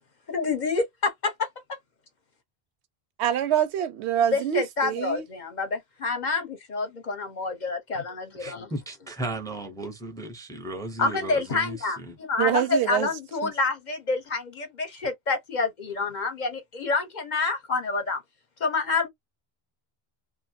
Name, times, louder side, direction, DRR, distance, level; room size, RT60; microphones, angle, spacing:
voice 1, 0.3-1.8 4.3-8.7 11.0-18.2 18.6-19.1, left 4 dB, 50° left, 0.7 m, -28 dB
voice 2, 3.2-5.2 12.4-13.1 13.4-13.5, right 10 dB, 85° right, 0.9 m, -25 dB
voice 3, 8.4-12.2, right 2 dB, 5° left, 0.4 m, -35 dB
2.5 x 2.2 x 2.6 m
omnidirectional pair, 1.1 m